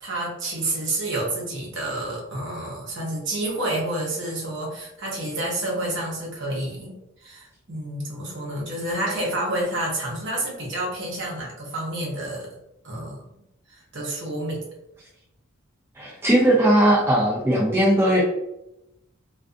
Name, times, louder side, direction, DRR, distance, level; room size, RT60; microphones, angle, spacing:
voice 1, 0.0-6.9 7.2-12.5 12.8-13.3 13.7-14.6, right 1 dB, 60° right, -3 dB, 0.8 m, -29 dB
voice 2, 16.0-18.2, right 1 dB, 10° right, -6 dB, 0.5 m, -18 dB
2.5 x 2.3 x 2.4 m, 0.85 s
head